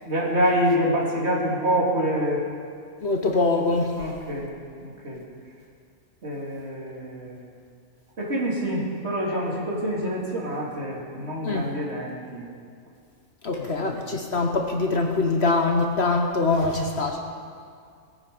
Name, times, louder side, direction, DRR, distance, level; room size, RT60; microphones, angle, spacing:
voice 1, 0.0-2.4 4.0-4.5 4.8-5.2 6.2-7.5 8.2-12.5 13.5-14.1, equal, 45° right, -4 dB, 2.9 m, -26 dB
voice 2, 3.0-4.0 11.4-11.7 13.4-17.2, left 3 dB, 50° left, 3 dB, 1.1 m, -23 dB
20.0 x 9.4 x 5.3 m, 2.2 s
omnidirectional pair, 1.5 m